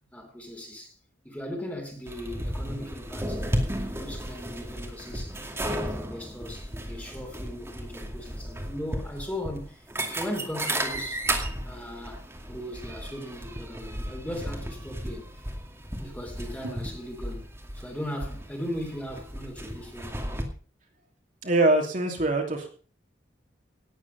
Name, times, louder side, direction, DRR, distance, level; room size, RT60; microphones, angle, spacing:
voice 1, 0.1-0.9 1.2-11.2 11.6-15.2 16.0-17.5 17.7-20.2, equal, 10° left, 3.1 m, -38 dB
sound 1, 2.1-20.4, right 1 dB, 15° right, 2.4 m, -34 dB
voice 2, 21.4-22.7, right 2 dB, 40° right, 3.0 m, -23 dB
18.0 x 8.7 x 5.4 m
head